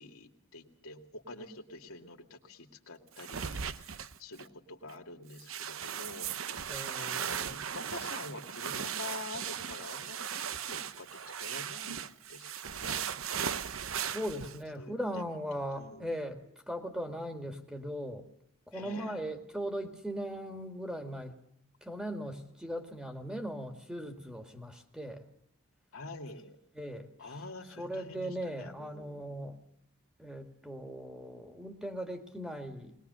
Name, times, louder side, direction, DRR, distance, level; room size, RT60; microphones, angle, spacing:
voice 1, 0.0-6.5 7.0-13.1 14.8-14.9 15.8-16.1 18.7-19.2 25.9-26.6 27.2-29.5, left 2 dB, 85° left, 3 dB, 2.4 m, -47 dB
sound 1, 3.2-4.4 4.9-5.0 5.4-14.6, right 8 dB, 70° right, 0.8 m, -37 dB
voice 2, 6.7-7.6 14.1-18.3 18.7-21.3 21.8-25.3 26.7-27.3 27.8-29.6 30.2-33.0, equal, 5° right, 5 dB, 2.0 m, -39 dB
21.0 x 20.5 x 6.8 m, 0.74 s
head